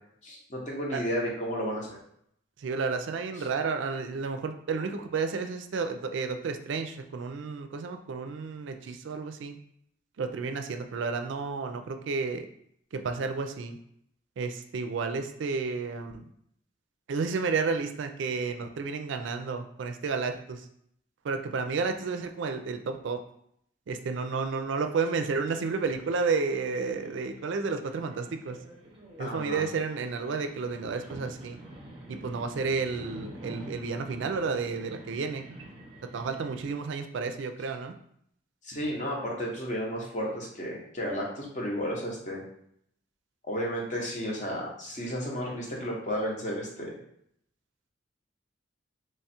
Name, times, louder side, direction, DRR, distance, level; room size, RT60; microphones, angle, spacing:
voice 1, 0.2-2.0 29.2-29.6 38.6-42.4 43.4-47.0, equal, 40° left, -2 dB, 0.8 m, -33 dB
voice 2, 2.6-9.6 10.2-12.5 12.9-13.8 14.4-16.2 17.1-20.7 21.2-23.2 23.9-28.6 29.2-31.6 32.1-35.5 36.1-37.9, right 4 dB, 70° right, 7 dB, 0.4 m, -31 dB
sound 1, 25.1-36.7, right 1 dB, 25° right, 0.7 m, -48 dB
3.1 x 2.3 x 4.2 m, 0.70 s
head